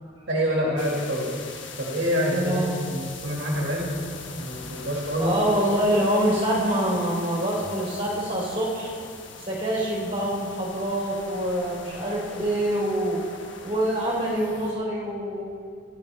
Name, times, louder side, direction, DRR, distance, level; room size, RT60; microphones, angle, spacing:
voice 1, 0.3-1.3 1.8-3.9 4.2-5.3, equal, 65° right, -4 dB, 2.0 m, -26 dB
sound 1, 0.8-14.7, left 4 dB, 70° left, 1.1 m, -41 dB
voice 2, 2.3-2.8 5.2-8.9 9.4-13.2 13.6-15.4, right 1 dB, 30° right, -5 dB, 3.5 m, -25 dB
16.0 x 11.0 x 3.4 m, 2.2 s
head